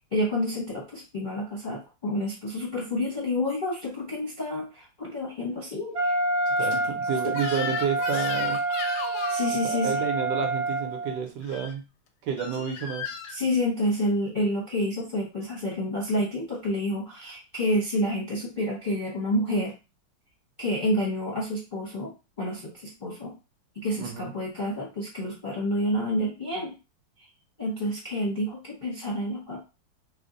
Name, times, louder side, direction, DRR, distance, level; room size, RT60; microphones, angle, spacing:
voice 1, 0.1-6.1 6.7-6.9 7.2-7.3 9.3-10.0 13.3-19.7 20.6-22.1 22.4-23.3 23.7-26.8 27.6-29.6, left 1 dB, 35° left, -5 dB, 0.8 m, -29 dB
Wind instrument woodwind instrument, 5.9-11.2, right 2 dB, 45° right, 0.9 m, -27 dB
voice 2, 6.6-8.6 9.6-11.8 12.2-13.0 24.0-24.3, right 7 dB, 70° right, 3 dB, 1.2 m, -30 dB
Crying sobbing / Screech, 7.3-9.5 11.4-11.7 12.4-13.4, left 5 dB, 80° left, 1.4 m, -35 dB
3.5 x 2.1 x 3.8 m, 0.29 s
omnidirectional pair, 2.2 m